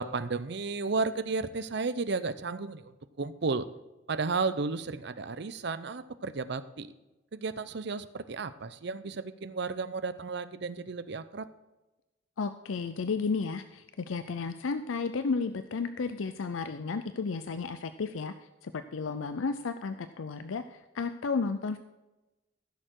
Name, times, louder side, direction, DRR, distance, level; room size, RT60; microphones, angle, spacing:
voice 1, 0.0-3.7 4.1-6.9 7.3-11.5, right 4 dB, 60° right, 13 dB, 0.6 m, -33 dB
voice 2, 12.4-21.8, left 4 dB, 85° left, 11 dB, 0.5 m, -33 dB
15.0 x 6.7 x 4.6 m, 1.0 s
head